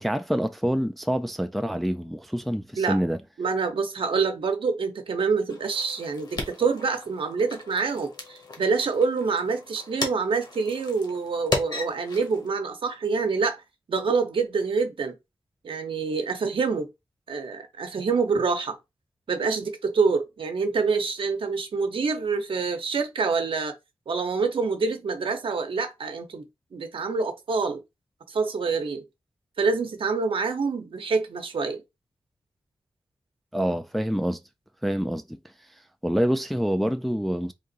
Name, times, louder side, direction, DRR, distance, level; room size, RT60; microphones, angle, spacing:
voice 1, 0.0-3.2 33.5-34.4 34.8-35.4 36.0-37.5, equal, ahead, 0.3 m, -26 dB
voice 2, 3.4-13.6 13.9-15.2 15.6-16.9 17.3-18.8 19.3-23.7 24.1-26.5 26.7-27.8 28.3-29.0 29.6-31.8, right 4 dB, 75° right, 0.9 m, -26 dB
sound 1, 5.5-12.5, left 3 dB, 50° left, 1.3 m, -36 dB
3.6 x 2.6 x 3.9 m
wide cardioid pair, 150°, 9 cm